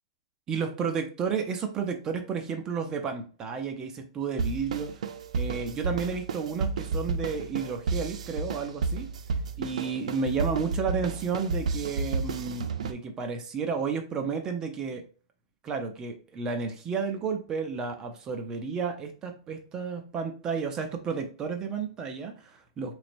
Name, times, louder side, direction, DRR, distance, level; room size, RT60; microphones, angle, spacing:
voice 1, 0.5-4.9 5.4-9.1 9.6-15.0 15.6-23.0, right 5 dB, 20° right, 5 dB, 0.4 m, -32 dB
sound 1, 4.4-12.9, right 4 dB, 75° right, 0.5 m, -32 dB
3.9 x 3.2 x 2.5 m, 0.37 s
hypercardioid pair, 160°, 4 cm